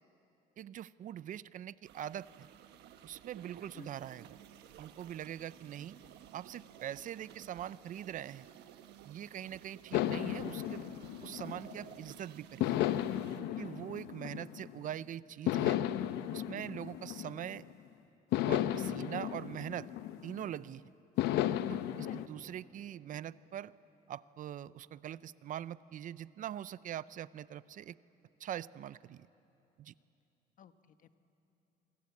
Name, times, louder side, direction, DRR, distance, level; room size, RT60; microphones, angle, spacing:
voice 1, 0.6-2.5 3.0-4.4 4.8-6.0 6.3-8.5 9.0-10.9 11.2-12.8 13.4-15.8 16.3-17.6 18.5-19.9 20.2-20.9 21.7-23.7 24.1-28.0 28.4-29.3 29.8-29.9, right 11 dB, 50° right, 18 dB, 0.5 m, -43 dB
sound 1, 1.8-13.4, right 10 dB, 80° right, 1.3 m, -55 dB
voice 2, 3.6-3.9 16.5-16.9 22.1-22.5 30.6-31.1, left 8 dB, 50° left, 10 dB, 1.2 m, -56 dB
sound 2, 9.9-12.0 12.6-14.9 15.5-17.7 18.3-20.6 21.2-22.3, left 12 dB, 85° left, 0.8 m, -34 dB
25.5 x 25.0 x 8.5 m, 2.9 s
cardioid pair, 110°, 17 cm